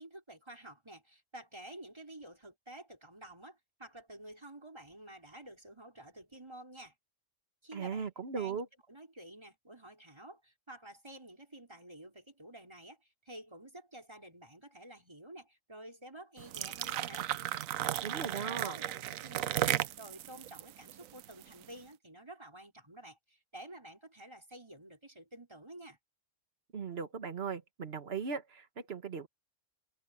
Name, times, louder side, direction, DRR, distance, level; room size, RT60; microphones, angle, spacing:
voice 1, 0.0-6.9 7.6-8.1 8.3-8.6 8.9-17.3 18.3-26.0, right 1 dB, 20° right, 4.7 m, -51 dB
voice 2, 7.7-8.7 18.0-18.8 26.7-29.3, right 6 dB, 50° right, 1.6 m, -38 dB
sound 1, 16.4-21.6, right 12 dB, 80° right, 1.0 m, -35 dB
omnidirectional pair, 1.4 m